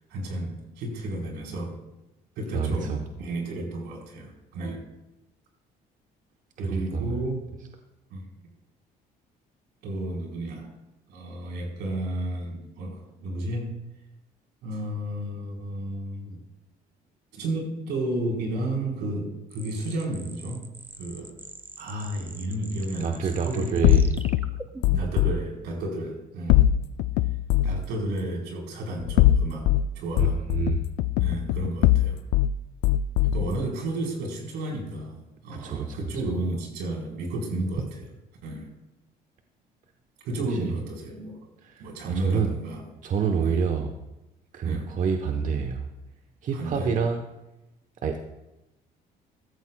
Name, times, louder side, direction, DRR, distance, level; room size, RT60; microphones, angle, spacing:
voice 1, 0.1-1.8 2.4-4.8 6.6-7.4 8.1-8.2 9.8-10.7 11.1-13.8 14.6-16.4 17.3-20.7 21.0-21.3 21.8-24.0 24.9-26.6 27.6-29.7 29.9-30.4 31.2-32.2 33.2-37.9 38.4-38.7 40.2-41.4 41.8-42.9 43.4-43.6 44.6-44.9 46.5-46.9, right 1 dB, 85° right, 0 dB, 4.0 m, -32 dB
voice 2, 2.5-3.0 6.6-7.2 23.0-24.1 30.2-30.8 35.6-36.0 40.5-40.6 41.6-41.9 42.1-42.5 43.0-43.9 44.5-45.9 46.4-47.2 48.0-48.2, right 6 dB, 50° right, 5 dB, 0.9 m, -27 dB
sound 1, 19.5-25.3, right 2 dB, 10° right, 0.8 m, -43 dB
sound 2, 23.8-25.3 26.5-27.8 29.0-29.8 30.2-32.5 32.8-33.5, left 13 dB, 90° left, 0.4 m, -21 dB
14.5 x 14.0 x 2.2 m, 0.96 s
cardioid pair, 110°, 17 cm